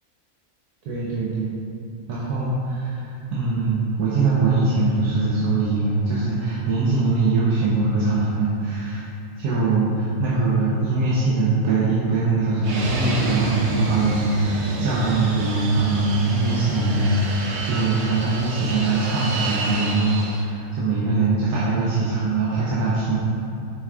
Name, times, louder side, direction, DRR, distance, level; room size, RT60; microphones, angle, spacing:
voice 1, 0.8-1.5 2.1-9.1 9.4-23.2, right 3 dB, 85° right, -7 dB, 1.3 m, -22 dB
Fixed-wing aircraft airplane, 12.6-20.5, right 2 dB, 60° right, 0.7 m, -30 dB
5.7 x 3.5 x 4.7 m, 2.7 s
omnidirectional pair, 1.6 m